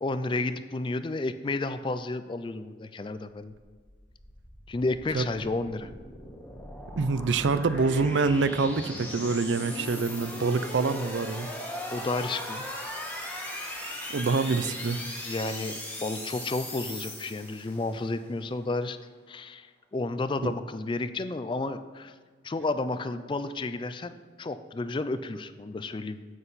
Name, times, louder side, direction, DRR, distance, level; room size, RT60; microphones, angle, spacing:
voice 1, 0.0-3.5 4.7-5.9 11.9-12.6 15.0-15.7 16.0-19.0 19.3-19.7 19.9-22.1 22.4-26.3, left 2 dB, 25° left, 12 dB, 0.4 m, -31 dB
sound 1, 3.5-18.0, left 1 dB, 10° left, 1.4 m, -39 dB
voice 2, 7.0-11.5 14.1-15.0 20.4-20.5, right 4 dB, 80° right, 13 dB, 0.5 m, -26 dB
9.6 x 7.8 x 4.0 m, 1.5 s
head